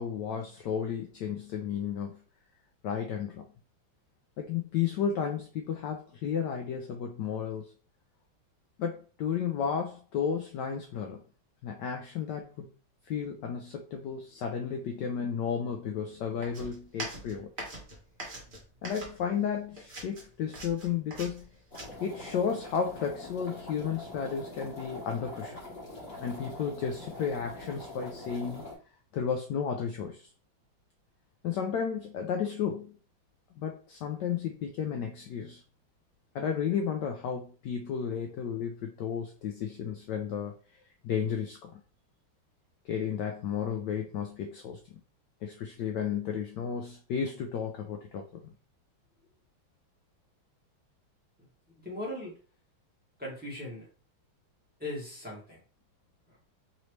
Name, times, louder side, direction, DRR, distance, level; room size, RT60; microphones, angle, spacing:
voice 1, 0.0-2.2 2.8-3.4 4.4-7.7 8.8-11.2 11.6-12.7 13.0-17.5 18.8-21.5 22.0-25.6 26.2-28.7 29.1-30.3 31.4-32.9 33.6-35.6 36.3-40.6 41.0-41.7 42.8-44.8 45.4-48.2, left 7 dB, 75° left, 3 dB, 1.0 m, -33 dB
sound 1, 16.4-19.5 19.8-21.8, right 2 dB, 30° right, 1.1 m, -42 dB
sound 2, 21.7-28.8, left 2 dB, 35° left, 1.9 m, -44 dB
voice 2, 51.8-52.4 53.2-53.9 54.8-55.6 56.3-56.4, left 1 dB, 5° right, -6 dB, 1.3 m, -38 dB
4.1 x 3.0 x 3.1 m, 0.38 s
omnidirectional pair, 2.2 m